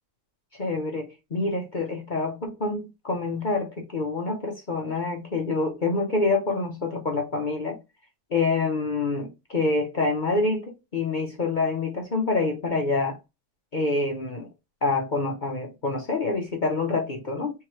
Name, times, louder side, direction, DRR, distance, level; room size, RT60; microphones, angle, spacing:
voice 1, 0.6-7.8 8.3-13.2 13.7-14.5 14.8-17.5, left 3 dB, 45° left, 0.6 m, -26 dB
3.5 x 3.0 x 4.7 m
omnidirectional pair, 1.8 m